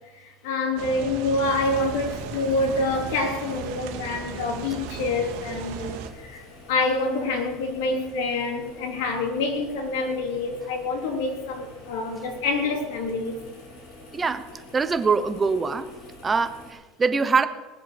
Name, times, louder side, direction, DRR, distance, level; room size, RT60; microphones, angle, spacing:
voice 1, 0.1-13.4, left 3 dB, 85° left, 2 dB, 3.5 m, -27 dB
sound 1, 0.8-6.1, right 7 dB, 70° right, 2.1 m, -36 dB
sound 2, 1.4-16.7, left 1 dB, 70° left, 5.7 m, -47 dB
voice 2, 14.1-14.5 14.7-15.9 16.2-17.5, right 4 dB, 15° right, 10 dB, 0.9 m, -23 dB
20.0 x 7.3 x 7.0 m, 1.2 s
cardioid pair, 150°, 0 cm